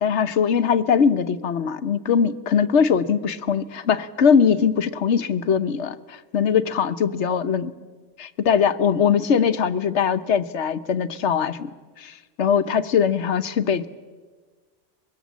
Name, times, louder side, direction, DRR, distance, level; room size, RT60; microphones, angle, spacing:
voice 1, 0.0-7.7 8.2-11.7 12.0-13.9, left 7 dB, 75° left, 12 dB, 1.2 m, -21 dB
24.5 x 22.0 x 7.3 m, 1.4 s
omnidirectional pair, 1.2 m